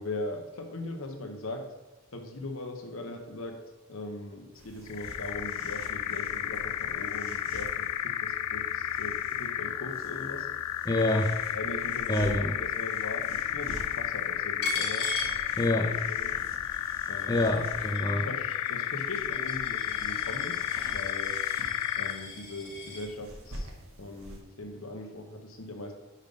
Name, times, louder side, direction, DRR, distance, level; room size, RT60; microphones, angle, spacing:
voice 1, 0.0-1.7 2.1-3.6 3.9-10.5 11.5-15.1 15.8-16.4 17.1-17.5 18.1-20.6 20.9-21.4 22.0-23.7 24.0-25.9, left 2 dB, 65° left, 4 dB, 0.9 m, -40 dB
sound 1, 4.5-24.4, right 1 dB, 65° right, 1.2 m, -47 dB
sound 2, 4.9-22.3, left 11 dB, 90° left, 0.3 m, -32 dB
voice 2, 10.9-11.4 12.1-12.6 15.6-15.9 17.3-18.3, left 1 dB, 15° left, 2 dB, 0.5 m, -26 dB
Coin (dropping), 14.6-16.1 16.5-23.1, left 3 dB, 50° left, 1.4 m, -39 dB
5.4 x 5.3 x 5.1 m, 1.1 s
head